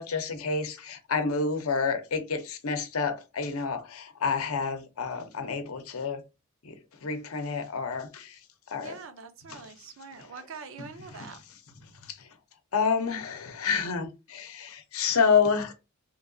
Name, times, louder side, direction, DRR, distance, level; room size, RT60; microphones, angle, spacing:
voice 1, 0.0-6.2 6.6-8.4 8.7-9.0 9.5-9.7 10.1-10.3 11.1-11.3 12.0-12.4 12.7-15.7, left 5 dB, 75° left, 0.7 m, -29 dB
voice 2, 8.8-11.4, right 5 dB, 60° right, 0.5 m, -44 dB
2.9 x 2.8 x 2.6 m
head